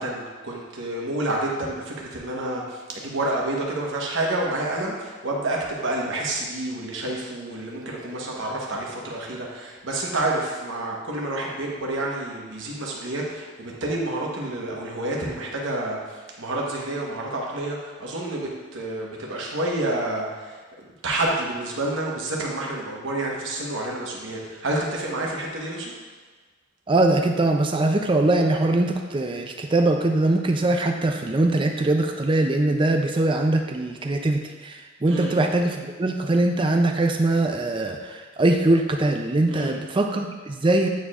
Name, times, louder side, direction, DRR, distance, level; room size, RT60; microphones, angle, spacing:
voice 1, 0.0-26.0 35.1-35.3 39.5-39.8, right 1 dB, 70° right, -2 dB, 1.1 m, -29 dB
voice 2, 26.9-40.9, right 2 dB, 25° right, 4 dB, 0.4 m, -22 dB
9.2 x 4.4 x 2.5 m, 1.4 s
head